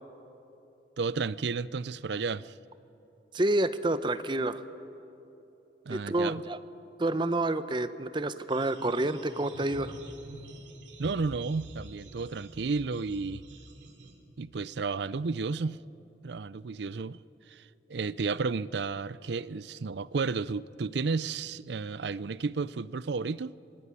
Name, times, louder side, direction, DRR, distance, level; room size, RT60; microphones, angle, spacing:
voice 1, 1.0-2.6 5.9-6.4 11.0-13.4 14.4-15.8 16.2-17.2 17.5-23.5, right 4 dB, 70° right, 0.5 m, -32 dB
voice 2, 3.3-4.6 5.9-6.6 7.0-9.9, right 2 dB, 25° right, 0.7 m, -28 dB
sound 1, 8.5-14.1, right 1 dB, 85° right, 3.0 m, -47 dB
25.0 x 19.5 x 9.7 m
head